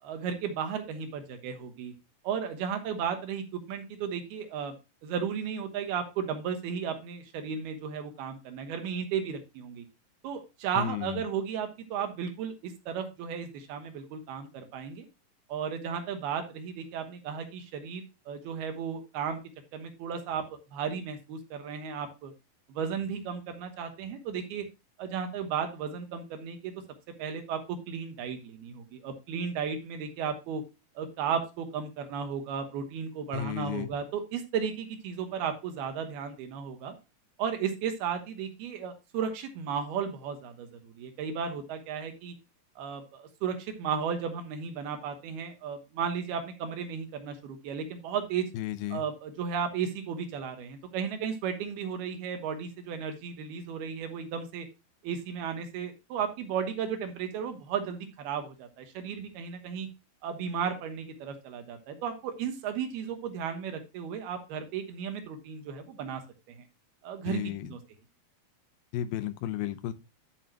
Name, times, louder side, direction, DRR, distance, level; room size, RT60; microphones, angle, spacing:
voice 1, 0.0-1.9 2.2-4.7 5.0-9.8 10.2-15.1 15.5-19.4 19.7-22.3 22.7-24.7 25.0-26.7 27.2-30.6 31.0-37.0 37.4-42.3 42.8-48.5 48.9-54.7 55.0-59.9 60.2-66.2 66.5-66.6 67.0-67.4 67.7-67.8, right 7 dB, 75° right, 3.1 m, -34 dB
voice 2, 10.8-11.2 33.3-33.9 48.5-49.0 67.2-67.7 68.9-69.9, left 12 dB, 75° left, 2.3 m, -33 dB
11.0 x 7.2 x 2.9 m
omnidirectional pair, 4.7 m